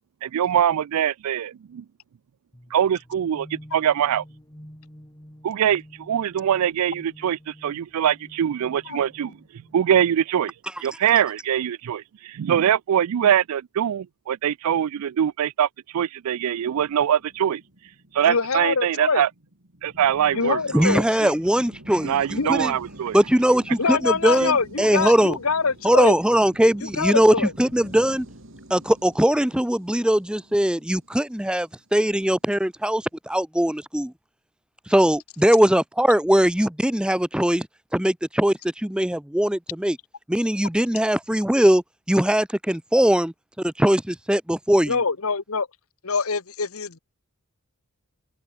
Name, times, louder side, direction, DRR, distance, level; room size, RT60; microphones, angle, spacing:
voice 1, 0.2-1.8 2.7-4.2 5.4-9.3 9.7-10.5 10.8-15.7 15.9-17.6 18.1-19.3 19.8-21.3 22.0-23.2, right 9 dB, 80° right, 0.4 m, -23 dB
sound 1, 2.5-10.3, equal, 15° left, 3.0 m, -49 dB
sound 2, 16.5-32.0, right 1 dB, 60° right, 3.6 m, -46 dB
voice 2, 18.2-19.2 20.3-21.0 22.4-22.5 23.8-26.1 26.8-27.5 44.9-45.7 46.0-47.0, left 4 dB, 75° left, 1.3 m, -24 dB
voice 3, 20.7-22.7 23.1-25.4 25.8-28.3 28.7-34.1 34.9-37.7 37.9-40.0 40.3-41.8 42.1-45.0, right 1 dB, 5° right, 0.5 m, -20 dB
head